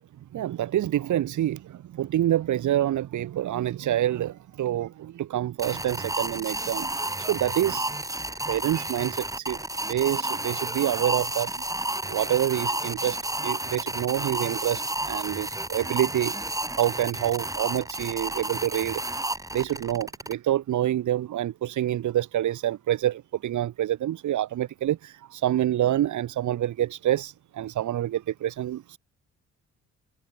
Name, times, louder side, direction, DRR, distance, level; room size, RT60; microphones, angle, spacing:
voice 1, 0.3-7.9 8.5-9.6 9.9-11.5 12.1-16.3 16.8-29.0, right 12 dB, 75° right, 4.9 m, -27 dB
sound 1, 5.6-20.3, right 2 dB, 10° right, 4.3 m, -31 dB
cardioid pair, 90°, 30 cm